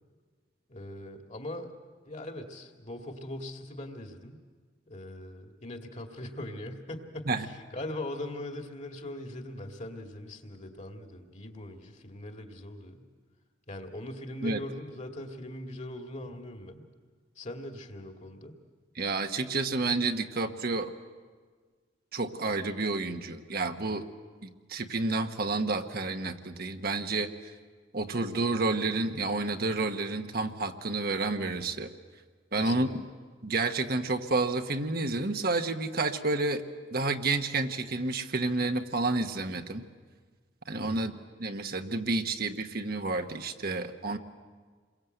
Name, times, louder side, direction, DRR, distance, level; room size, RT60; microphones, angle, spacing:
voice 1, 0.7-1.8 2.0-4.4 4.9-13.1 13.7-16.8 17.4-18.6 32.5-33.1 40.8-41.2, left 1 dB, 40° left, 4 dB, 2.3 m, -41 dB
voice 2, 19.0-20.9 22.1-24.1 24.4-27.3 27.9-31.9 32.5-33.0 33.4-36.6 36.9-39.8 40.7-41.1 41.4-44.2, right 3 dB, 55° right, 6 dB, 1.2 m, -30 dB
28.0 x 22.5 x 8.0 m, 1.5 s
head